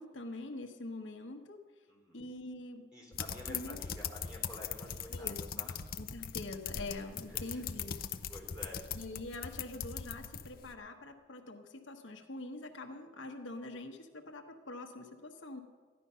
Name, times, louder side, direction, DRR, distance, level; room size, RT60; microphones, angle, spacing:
voice 1, 0.0-1.6 2.1-2.8 3.5-3.8 5.1-5.6 6.0-8.0 8.9-15.6, left 2 dB, 80° left, 4 dB, 1.1 m, -44 dB
voice 2, 1.9-2.2 2.9-5.9 6.9-7.6 8.3-8.9, left 1 dB, 5° right, -2 dB, 4.2 m, -50 dB
sound 1, 3.1-10.7, left 8 dB, 50° left, 0.6 m, -40 dB
14.0 x 10.5 x 5.5 m, 1.5 s
head